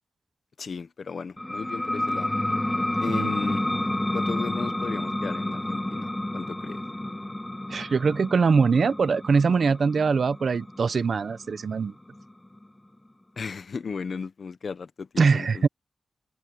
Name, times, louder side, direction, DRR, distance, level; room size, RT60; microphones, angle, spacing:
voice 1, 0.6-2.3 3.0-3.7 4.1-6.8 13.4-15.7, left 5 dB, 55° left, 1.2 m, -35 dB
sound 1, 1.4-12.6, left 1 dB, 10° left, 0.5 m, -30 dB
voice 2, 7.7-11.9 15.2-15.7, right 5 dB, 55° right, 1.0 m, -22 dB
wide cardioid pair, 155°, 0 cm